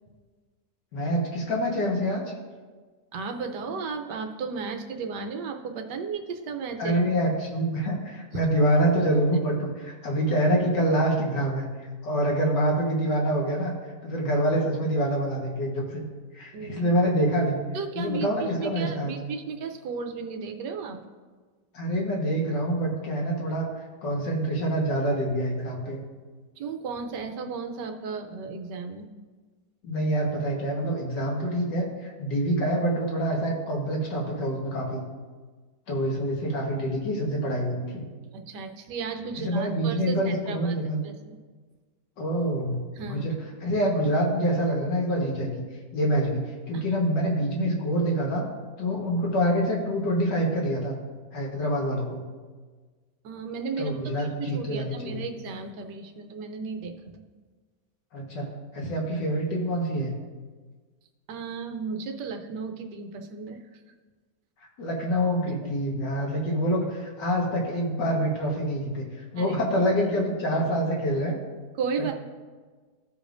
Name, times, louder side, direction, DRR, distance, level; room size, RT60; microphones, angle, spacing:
voice 1, 0.9-2.2 6.8-11.7 12.0-13.7 14.0-16.0 16.3-17.6 18.0-19.1 21.7-26.0 29.8-35.0 35.9-38.0 39.5-41.0 42.2-43.3 43.6-45.6 45.9-46.4 46.7-48.4 48.8-51.0 51.3-52.2 53.8-55.2 58.1-58.4 58.7-60.1 64.8-71.4, equal, 85° left, -2 dB, 2.1 m, -26 dB
voice 2, 3.1-7.0 16.5-16.8 17.7-21.0 26.6-29.1 38.3-40.8 41.0-41.3 42.9-43.3 46.7-46.8 53.2-57.2 61.3-63.6 69.3-69.5 71.7-72.1, right 5 dB, 75° right, 5 dB, 1.4 m, -34 dB
15.0 x 5.1 x 2.6 m, 1.4 s
omnidirectional pair, 1.8 m